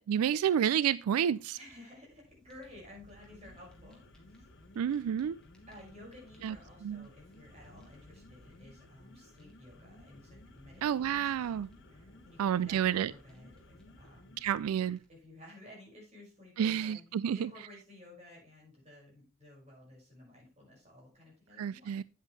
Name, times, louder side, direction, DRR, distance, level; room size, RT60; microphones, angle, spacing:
voice 1, 0.0-1.6 4.8-5.4 6.4-6.6 6.8-7.1 10.8-11.7 12.4-13.1 14.4-15.0 16.6-17.5 21.6-22.0, right 9 dB, 90° right, 0.3 m, -30 dB
voice 2, 1.5-4.5 5.7-11.6 12.2-12.8 13.1-14.4 15.1-17.0 17.3-22.0, left 1 dB, 30° right, 5.6 m, -54 dB
Fire, 1.9-15.4, left 1 dB, 5° left, 2.0 m, -59 dB
sound 1, 3.0-15.0, left 2 dB, 50° left, 0.9 m, -59 dB
9.4 x 8.2 x 3.2 m
head